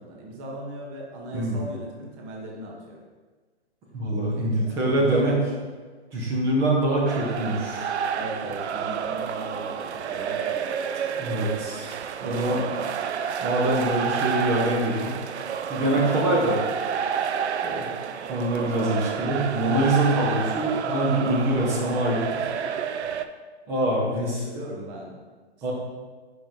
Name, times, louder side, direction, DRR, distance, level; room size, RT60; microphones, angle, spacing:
voice 1, 0.0-3.0 4.4-5.6 6.1-6.3 8.1-10.5 12.2-12.8 24.0-25.2, right 1 dB, 25° right, -1 dB, 1.0 m, -37 dB
voice 2, 1.3-1.7 3.9-5.4 6.1-7.9 11.2-11.9 12.2-12.6 13.4-15.1 15.7-16.6 17.6-17.9 18.3-22.4 23.7-24.4 25.6-25.7, right 1 dB, 10° right, -2 dB, 0.4 m, -24 dB
sound 1, 7.1-23.2, right 7 dB, 80° right, 0.5 m, -29 dB
5.7 x 4.9 x 3.6 m, 1.4 s
hypercardioid pair, 145°, 33 cm